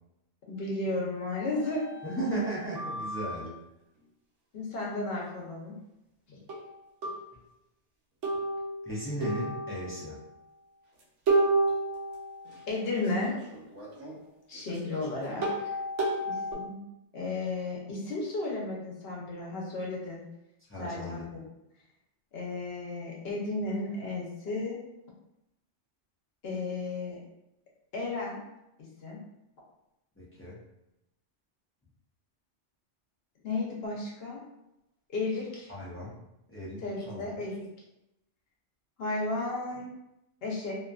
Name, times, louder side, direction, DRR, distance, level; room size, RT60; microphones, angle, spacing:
voice 1, 0.5-1.9 4.5-5.7 6.3-6.4 12.7-13.3 14.5-15.5 16.3-16.8 17.1-20.2 20.8-21.2 22.3-24.8 26.4-27.2 27.9-28.4 29.0-29.2 33.4-34.4 35.1-35.7 36.8-37.6 39.0-39.9 40.4-40.8, left 2 dB, 60° left, -3 dB, 0.9 m, -33 dB
sound 1, 1.6-3.4 6.5-6.7 7.0-7.2 8.2-10.2 11.3-14.2 14.6-16.5, right 2 dB, 85° right, 1.0 m, -31 dB
voice 2, 2.0-3.6 8.8-10.2 20.7-21.4 30.2-30.6 35.7-36.2 36.5-37.3, right 1 dB, 20° left, -7 dB, 0.4 m, -36 dB
2.6 x 2.5 x 2.3 m, 0.88 s
omnidirectional pair, 1.2 m